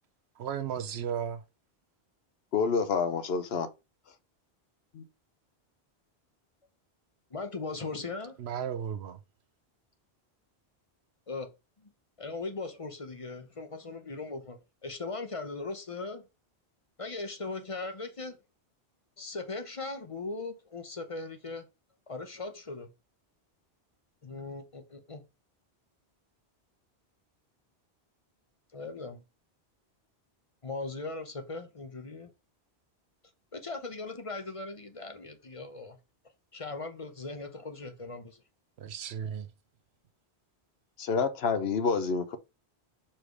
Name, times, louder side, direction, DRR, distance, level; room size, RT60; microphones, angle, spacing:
voice 1, 0.4-1.4 8.4-9.2 38.8-39.5, right 8 dB, 80° right, 1.0 m, -35 dB
voice 2, 2.5-3.7 4.9-5.0 41.0-42.4, left 5 dB, 70° left, 1.0 m, -28 dB
voice 3, 7.3-8.4 11.3-11.5 11.8-11.9 12.2-16.3 17.0-18.4 19.2-21.7 22.1-22.9 24.2-25.2 28.7-29.2 30.6-32.3 33.5-36.0 36.5-38.4, left 3 dB, 35° left, 0.8 m, -39 dB
4.9 x 4.4 x 4.8 m
omnidirectional pair, 1.1 m